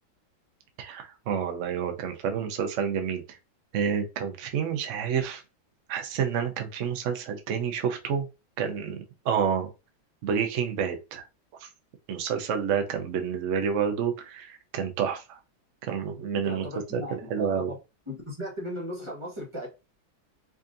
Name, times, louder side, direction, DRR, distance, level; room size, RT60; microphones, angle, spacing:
voice 1, 0.8-3.4 3.7-5.4 5.9-8.3 8.6-9.0 9.2-9.7 10.2-11.2 11.6-11.7 12.1-15.4 15.8-16.7 16.9-17.7, right 7 dB, 70° right, 0.7 m, -29 dB
voice 2, 16.3-17.8 18.1-19.7, equal, 20° right, 1.0 m, -37 dB
5.0 x 2.6 x 2.5 m
omnidirectional pair, 2.1 m